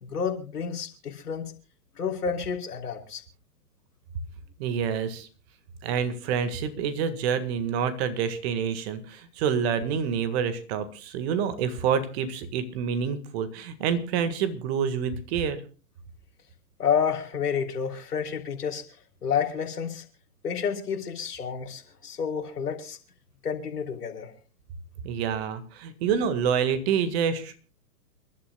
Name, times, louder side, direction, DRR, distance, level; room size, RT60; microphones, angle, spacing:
voice 1, 0.0-1.5 2.0-3.2 16.8-18.8 19.2-20.0 20.4-23.0 23.4-24.3, left 7 dB, 75° left, 3 dB, 3.2 m, -29 dB
voice 2, 4.6-5.3 5.8-15.6 25.0-27.5, right 7 dB, 40° right, 11 dB, 1.8 m, -27 dB
29.0 x 11.5 x 2.3 m, 0.37 s
figure-of-eight pair, 115°, 47 cm